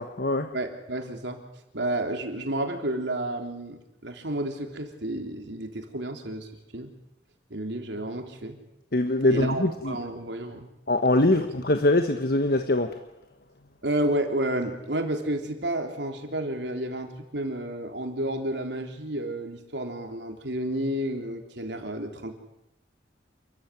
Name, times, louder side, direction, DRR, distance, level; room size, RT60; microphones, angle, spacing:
voice 1, 0.0-0.5 8.9-10.0 10.9-13.0, left 2 dB, 55° left, 8 dB, 1.3 m, -23 dB
voice 2, 0.5-1.4 1.7-6.5 6.7-6.9 7.5-8.6 9.3-10.7 13.8-22.3, right 1 dB, 70° right, 4 dB, 3.6 m, -31 dB
28.5 x 14.5 x 9.5 m, 0.89 s
head